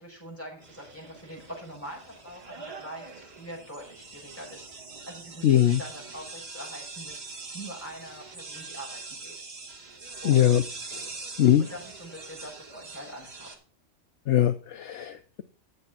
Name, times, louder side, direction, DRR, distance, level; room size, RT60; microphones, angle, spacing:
voice 1, 0.0-9.3 10.2-10.6 11.6-13.5, equal, 10° left, -2 dB, 5.6 m, -43 dB
sound 1, 0.6-13.6, right 3 dB, 55° right, 1.9 m, -43 dB
voice 2, 5.4-5.8 10.2-10.6 11.4-11.6 14.3-15.4, left 11 dB, 70° left, 9 dB, 1.0 m, -21 dB
9.9 x 7.3 x 5.8 m, 0.39 s
omnidirectional pair, 1.3 m